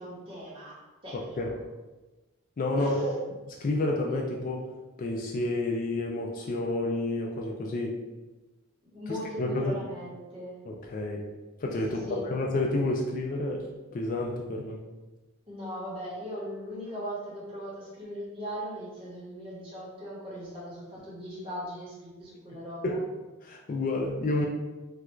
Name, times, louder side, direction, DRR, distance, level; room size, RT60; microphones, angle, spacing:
voice 1, 0.0-1.6 2.7-3.1 8.9-10.6 11.9-12.2 15.5-23.0, equal, 25° right, -7 dB, 1.0 m, -39 dB
voice 2, 1.1-1.5 2.6-3.1 3.5-4.7 5.0-8.0 9.1-9.8 10.7-11.3 11.6-13.7 13.9-14.8 22.8-23.0 23.4-24.4, left 2 dB, 40° left, 0 dB, 0.3 m, -30 dB
3.3 x 2.3 x 3.0 m, 1.2 s
head